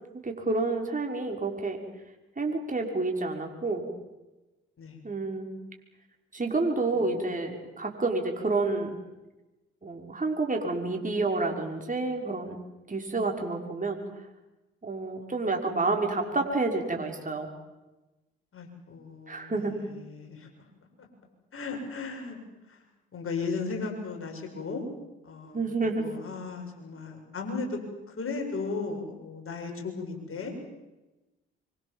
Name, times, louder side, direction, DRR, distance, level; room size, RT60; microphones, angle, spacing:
voice 1, 0.2-1.8 2.4-3.8 5.0-5.5 6.3-8.9 9.8-12.6 12.9-14.0 14.8-17.5 19.3-19.7 25.5-26.0, right 3 dB, 25° right, 2 dB, 6.0 m, -29 dB
voice 2, 6.9-7.4 18.5-20.6 21.0-21.1 21.5-22.4 22.7-22.8 23.1-24.8 25.2-27.8 28.1-30.5, left 4 dB, 45° left, 2 dB, 7.7 m, -36 dB
26.0 x 24.5 x 7.5 m, 1.1 s
hypercardioid pair, 45°, 30 cm